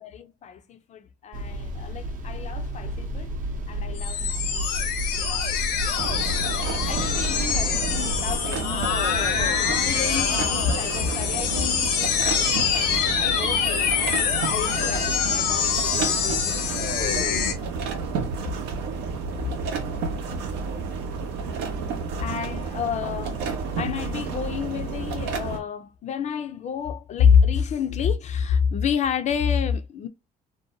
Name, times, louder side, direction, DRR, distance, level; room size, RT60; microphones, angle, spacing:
voice 1, 0.0-3.3 3.7-4.6 5.1-5.6 5.9-6.2 6.7-8.9 9.3-14.2 14.5-17.5 22.2-23.4 23.8-30.1, left 7 dB, 45° left, 0.4 m, -28 dB
sound 1, 1.3-8.4, right 1 dB, 50° right, 0.6 m, -31 dB
sound 2, 4.0-17.5, left 7 dB, 80° left, 0.7 m, -25 dB
sound 3, 6.0-25.6, right 4 dB, 90° right, 0.7 m, -31 dB
2.6 x 2.1 x 2.6 m
cardioid pair, 110°, 17 cm